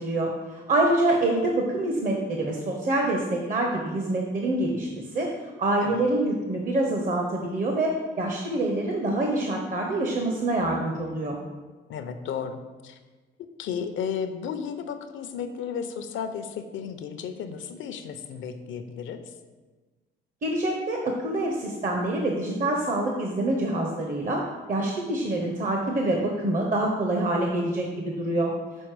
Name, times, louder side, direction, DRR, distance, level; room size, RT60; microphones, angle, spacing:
voice 1, 0.0-5.3 5.6-11.4 20.4-24.4 24.7-28.5, right 1 dB, 45° right, 1 dB, 0.8 m, -26 dB
voice 2, 11.9-13.0 13.6-19.2, left 7 dB, 75° left, 9 dB, 0.6 m, -33 dB
6.3 x 4.2 x 4.7 m, 1.3 s
cardioid pair, 90°, 20 cm